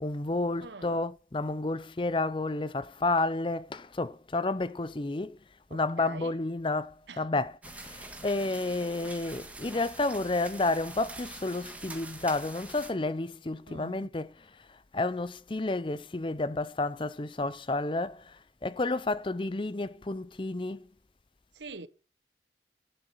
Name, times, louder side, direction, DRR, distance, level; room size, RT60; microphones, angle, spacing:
voice 1, 0.0-5.4 5.7-7.6 7.8-14.3 14.9-18.2 18.6-20.8, left 2 dB, 30° left, 0.6 m, -31 dB
voice 2, 0.6-1.0 5.7-6.4 7.1-7.2 13.7-14.1 21.6-21.9, right 3 dB, 90° right, 1.1 m, -44 dB
sound 1, 7.6-12.9, right 2 dB, 10° right, 1.7 m, -45 dB
11.0 x 8.1 x 5.7 m
head